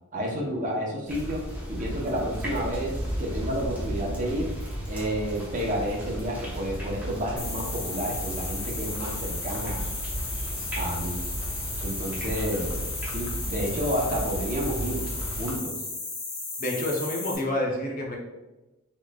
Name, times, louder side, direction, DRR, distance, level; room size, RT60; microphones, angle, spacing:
voice 1, 0.1-1.4 1.7-4.5 4.9-9.9 10.7-11.2 11.8-15.1 15.4-15.7, equal, 40° right, -2 dB, 0.7 m, -30 dB
sound 1, 1.1-15.6, right 1 dB, 10° right, 0.8 m, -34 dB
sound 2, 7.4-17.4, left 3 dB, 65° left, 1.2 m, -35 dB
voice 2, 16.6-18.2, left 1 dB, 40° left, 0 dB, 0.7 m, -28 dB
4.2 x 3.0 x 2.3 m, 1.0 s
head